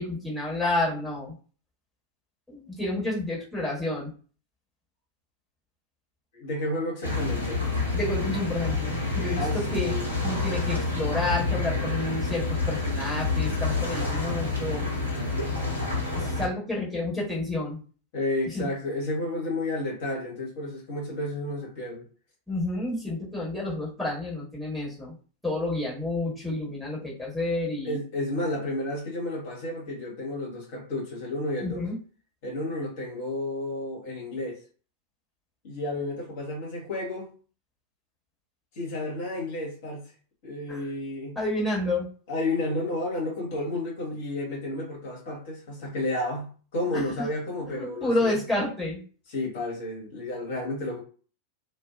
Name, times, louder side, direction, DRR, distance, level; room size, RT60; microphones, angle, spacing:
voice 1, 0.0-1.3 2.5-4.1 7.9-9.9 10.2-14.9 16.1-17.8 18.5-18.7 22.5-25.1 25.4-28.0 31.6-32.0 40.7-40.8 41.3-42.1 46.9-47.0 47.7-49.0, left 2 dB, ahead, 1.2 m, -30 dB
voice 2, 6.3-7.6 9.4-10.1 18.1-22.0 27.8-31.9 32.4-34.6 35.6-37.3 38.7-40.0 40.4-41.4 42.3-48.3 49.3-51.0, left 1 dB, 50° left, 1.0 m, -31 dB
sound 1, 7.0-16.5, left 3 dB, 90° right, 0.8 m, -28 dB
2.4 x 2.2 x 2.4 m
figure-of-eight pair, 90°, 0 cm